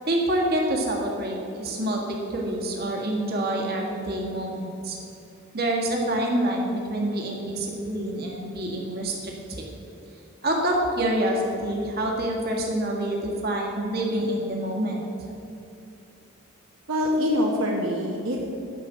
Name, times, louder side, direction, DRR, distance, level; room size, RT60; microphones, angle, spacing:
voice 1, 0.1-5.0 5.5-9.7 10.4-15.1, right 1 dB, 45° right, -1 dB, 1.7 m, -27 dB
voice 2, 16.9-18.4, left 1 dB, 70° right, -2 dB, 1.3 m, -24 dB
10.0 x 5.1 x 8.1 m, 2.8 s
head